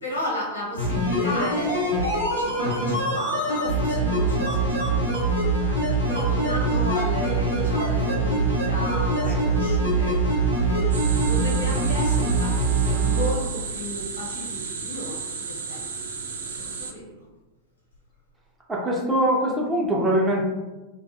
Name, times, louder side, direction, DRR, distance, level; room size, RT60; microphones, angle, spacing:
voice 1, 0.0-17.2, left 1 dB, 75° left, -4 dB, 0.9 m, -34 dB
sound 1, 0.8-13.3 13.6-13.7, right 2 dB, 90° right, 0.7 m, -23 dB
sound 2, 10.9-16.9, right 5 dB, 65° right, 0.3 m, -34 dB
voice 2, 18.7-20.4, right 1 dB, 10° right, -3 dB, 0.5 m, -23 dB
2.4 x 2.3 x 2.7 m, 1.1 s
figure-of-eight pair, 90°, 0 cm